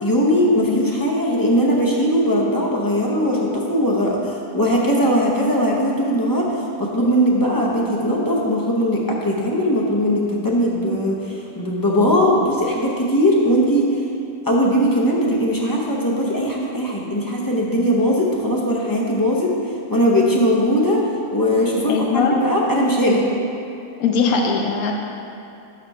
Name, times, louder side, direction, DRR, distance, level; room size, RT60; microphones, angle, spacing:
voice 1, 0.0-6.5 6.8-14.0 14.4-19.5 19.9-21.1 21.3-23.2, equal, 25° left, -4 dB, 0.5 m, -19 dB
voice 2, 21.9-22.4 24.0-24.9, left 5 dB, 80° left, 1 dB, 1.1 m, -20 dB
5.8 x 5.1 x 5.4 m, 2.6 s
omnidirectional pair, 1.5 m